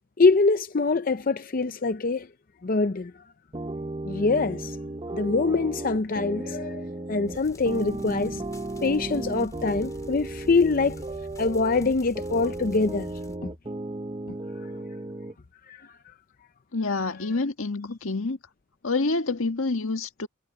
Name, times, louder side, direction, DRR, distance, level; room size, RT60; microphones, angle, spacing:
voice 1, 0.2-2.3 2.6-3.1 4.1-4.8 5.1-8.4 8.8-11.0 11.4-13.1 15.7-15.9, left 3 dB, 45° left, 0.6 m, -24 dB
sound 1, 3.5-15.3, right 2 dB, 25° right, 0.7 m, -35 dB
sound 2, 7.3-13.4, equal, 15° left, 2.7 m, -46 dB
voice 2, 16.7-18.4 18.8-20.3, left 3 dB, 80° left, 1.6 m, -27 dB
head